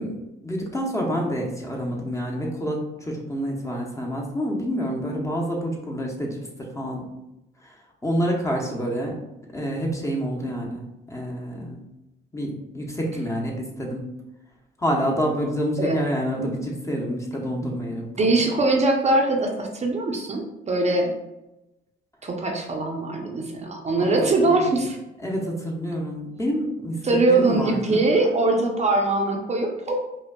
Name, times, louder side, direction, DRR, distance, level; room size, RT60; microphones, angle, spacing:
voice 1, 0.0-7.1 8.0-9.2 9.5-11.8 12.3-14.0 14.8-18.4 24.0-24.2 24.6-24.7 25.2-27.0 27.3-28.1, equal, 15° left, -1 dB, 0.7 m, -28 dB
voice 2, 18.2-21.1 22.2-25.0 27.0-30.0, right 2 dB, 35° right, 1 dB, 0.6 m, -22 dB
5.0 x 2.2 x 2.2 m, 0.93 s
cardioid pair, 90°, 20 cm